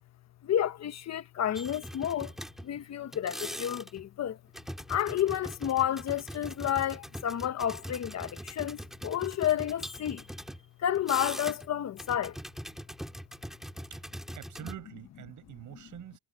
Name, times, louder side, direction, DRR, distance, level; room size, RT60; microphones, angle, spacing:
voice 1, 0.4-2.3 2.6-4.4 4.9-10.2 10.8-12.4, left 10 dB, 60° left, 1.2 m, -30 dB
sound 1, 1.6-2.8 3.1-4.1 4.5-10.6 10.9-11.7 12.0-14.8, equal, ahead, 4.3 m, -42 dB
voice 2, 14.3-16.2, right 12 dB, 80° right, 6.9 m, -45 dB
cardioid pair, 90°, 30 cm